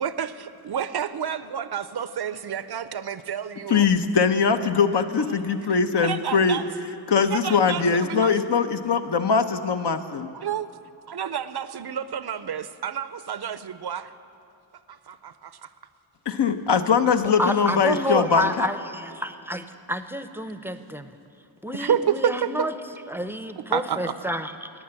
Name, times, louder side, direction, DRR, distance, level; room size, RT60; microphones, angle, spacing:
voice 1, 0.0-3.9 6.0-6.7 7.3-8.3 10.3-10.7 11.1-14.1 14.9-15.7 21.7-22.7 23.6-24.1, right 8 dB, 55° right, 13 dB, 0.6 m, -29 dB
voice 2, 3.7-6.6 7.1-10.3 16.3-18.7, left 5 dB, 60° left, 8 dB, 0.8 m, -21 dB
voice 3, 17.4-21.1 21.6-22.7 23.1-24.7, equal, 5° right, 10 dB, 0.6 m, -29 dB
12.5 x 8.8 x 8.8 m, 2.6 s
cardioid pair, 60°, 48 cm